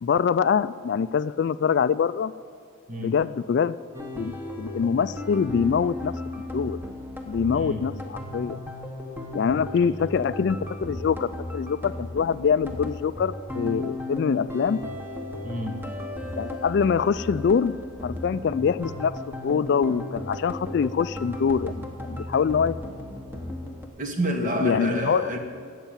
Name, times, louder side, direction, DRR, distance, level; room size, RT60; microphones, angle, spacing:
voice 1, 0.0-2.3 3.0-3.8 4.2-6.1 6.5-6.8 7.3-8.6 9.3-14.8 16.3-17.8 18.0-19.1 19.4-22.8 24.6-25.3, left 6 dB, 55° left, 16 dB, 0.3 m, -24 dB
sound 1, 3.9-23.9, left 1 dB, 10° right, 1.2 m, -35 dB
voice 2, 15.4-15.8 24.0-25.4, right 1 dB, 40° right, 4 dB, 1.4 m, -28 dB
12.5 x 8.2 x 9.0 m, 2.5 s
head